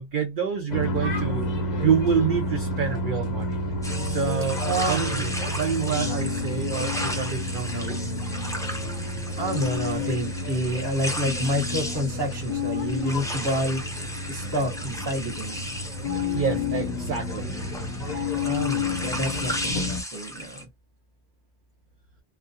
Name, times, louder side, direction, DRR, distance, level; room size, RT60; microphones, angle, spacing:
voice 1, 0.0-1.4 1.8-3.6 4.0-4.6 4.9-5.3 5.6-8.0 16.3-17.6, right 7 dB, 60° right, 0.6 m, -27 dB
sound 1, 0.7-20.0, left 2 dB, 45° left, 0.8 m, -30 dB
sound 2, 3.8-20.6, equal, 5° left, 0.3 m, -35 dB
voice 2, 4.6-5.4 9.4-13.8 14.3-15.6 18.4-20.7, equal, 25° right, 0.9 m, -28 dB
2.3 x 2.1 x 2.7 m
omnidirectional pair, 1.1 m